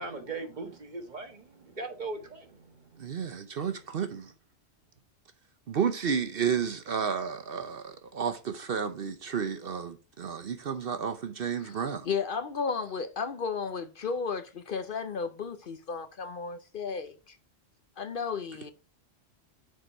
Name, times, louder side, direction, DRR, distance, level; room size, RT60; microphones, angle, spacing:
voice 1, 0.0-2.6 3.1-3.2, right 3 dB, 40° right, 1.5 m, -39 dB
voice 2, 3.0-4.3 5.7-12.1, right 7 dB, 60° right, 0.9 m, -32 dB
voice 3, 12.1-17.4 18.0-18.7, left 5 dB, 55° left, 0.8 m, -34 dB
6.6 x 4.8 x 5.4 m
omnidirectional pair, 1.2 m